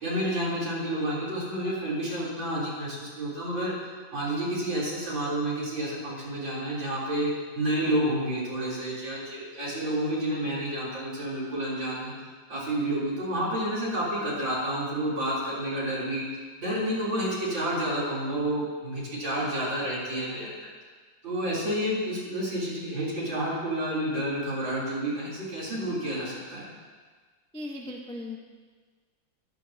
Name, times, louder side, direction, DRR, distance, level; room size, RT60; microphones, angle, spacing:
voice 1, 0.0-3.7 4.1-12.1 12.5-16.2 16.6-20.5 21.2-26.7, right 1 dB, 75° right, -8 dB, 4.3 m, -30 dB
voice 2, 27.5-28.4, left 2 dB, 10° left, 0 dB, 0.3 m, -37 dB
14.5 x 11.0 x 2.8 m, 1.5 s
omnidirectional pair, 2.1 m